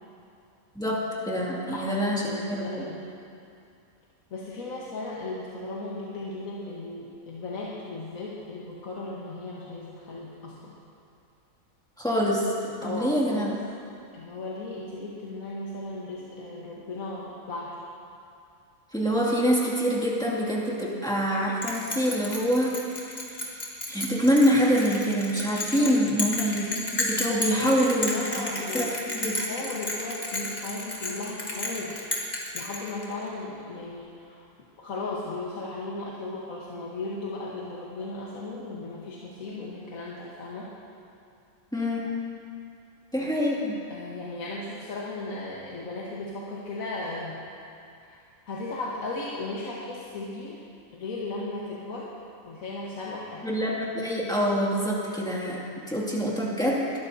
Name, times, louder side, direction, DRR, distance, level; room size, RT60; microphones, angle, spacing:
voice 1, 0.7-2.8 12.0-13.6 18.9-23.5 23.9-28.1 28.3-29.4 41.7-42.1 43.1-43.8 53.4-56.8, equal, 5° left, -5 dB, 2.2 m, -26 dB
voice 2, 1.3-3.0 4.3-10.8 12.8-13.5 14.1-17.7 25.8-26.1 27.2-28.9 29.2-32.0 32.5-34.5 34.8-40.7 43.2-43.6 43.9-47.4 48.0-48.2 48.5-50.6 50.9-52.1 52.5-53.5, left 2 dB, 75° left, -6 dB, 1.7 m, -36 dB
Bell, 21.6-33.3, left 1 dB, 30° left, 1.7 m, -32 dB
21.5 x 12.5 x 2.7 m, 2.5 s
omnidirectional pair, 1.5 m